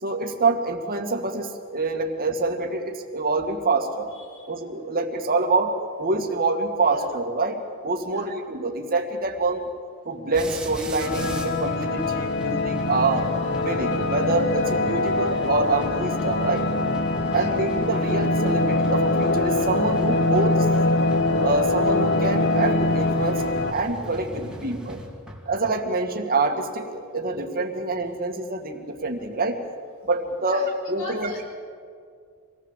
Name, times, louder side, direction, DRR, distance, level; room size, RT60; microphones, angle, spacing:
voice 1, 0.0-4.1 4.5-9.7 10.1-13.3 13.6-16.7 17.3-20.7 21.4-23.5 23.7-25.0 25.5-29.6 30.1-31.3, right 3 dB, 45° right, 3 dB, 2.2 m, -26 dB
voice 2, 4.1-4.5 6.9-7.0 8.0-8.3 17.3-17.5 30.5-30.7 31.0-31.5, left 1 dB, 75° left, 0 dB, 6.0 m, -40 dB
sound 1, 10.3-25.7, equal, 5° right, 2.5 m, -38 dB
sound 2, 11.0-23.7, left 2 dB, 55° left, 1.3 m, -23 dB
26.5 x 18.5 x 7.5 m, 2.1 s
head